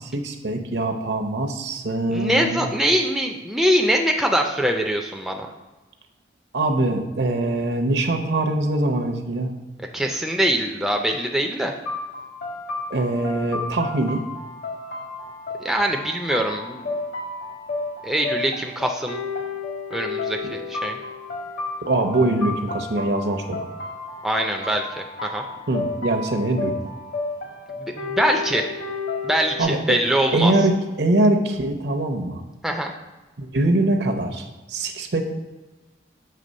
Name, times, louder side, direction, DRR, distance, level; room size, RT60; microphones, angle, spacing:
voice 1, 0.0-2.7 6.5-9.5 12.9-14.2 21.8-23.7 25.7-26.7 29.6-30.0 30.3-32.4 33.4-35.2, right 2 dB, 70° right, 5 dB, 0.7 m, -23 dB
voice 2, 2.1-5.5 9.9-11.7 15.6-16.9 18.0-19.2 19.9-21.0 24.2-24.9 25.2-25.4 27.8-28.7 29.2-30.5 32.6-32.9, equal, ahead, 2 dB, 0.4 m, -23 dB
sound 1, 11.9-29.6, left 3 dB, 65° left, 1.3 m, -32 dB
6.7 x 3.3 x 5.2 m, 1.1 s
head